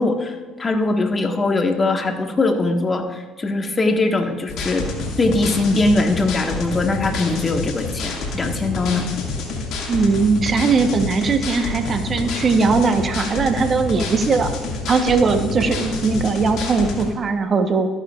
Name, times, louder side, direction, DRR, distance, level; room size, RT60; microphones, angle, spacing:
voice 1, 0.0-4.9 5.2-9.0, left 2 dB, 30° left, 4 dB, 1.5 m, -21 dB
sound 1, 4.5-17.0, left 3 dB, 70° left, 2.0 m, -28 dB
voice 2, 9.9-14.5 14.9-17.9, right 4 dB, 45° right, 7 dB, 1.0 m, -19 dB
14.0 x 9.9 x 2.4 m, 1.3 s
hypercardioid pair, 65°, 0 cm